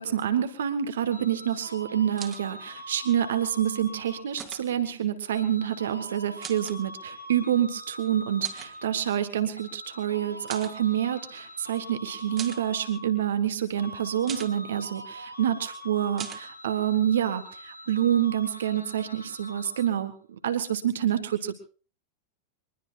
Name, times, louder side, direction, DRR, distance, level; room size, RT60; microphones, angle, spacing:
voice 1, 0.0-21.6, right 10 dB, 65° right, 10 dB, 1.5 m, -27 dB
sound 1, 1.1-4.5 5.3-9.1 9.6-13.5 13.8-20.1, equal, 90° right, 1.4 m, -44 dB
sound 2, 2.2-2.4 4.4-4.7 6.4-6.8 8.4-8.7 10.5-10.8 12.4-12.6 14.3-14.6 16.2-16.4, right 8 dB, 25° right, 1.9 m, -39 dB
23.0 x 21.0 x 2.5 m, 0.38 s
figure-of-eight pair, 90°, 0 cm